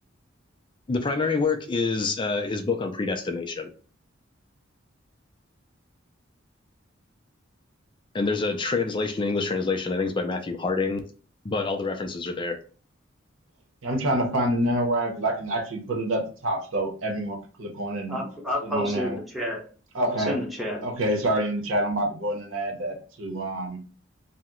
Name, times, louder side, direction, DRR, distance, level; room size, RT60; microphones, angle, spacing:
voice 1, 0.9-3.7 8.1-11.0 11.4-12.6, left 4 dB, 25° left, 0.4 m, -27 dB
voice 2, 13.8-18.2 18.6-19.2 19.9-20.4 20.8-23.8, right 1 dB, 85° right, 0.8 m, -27 dB
voice 3, 18.1-19.6 20.2-20.9, equal, ahead, 0.8 m, -30 dB
2.8 x 2.1 x 3.6 m
head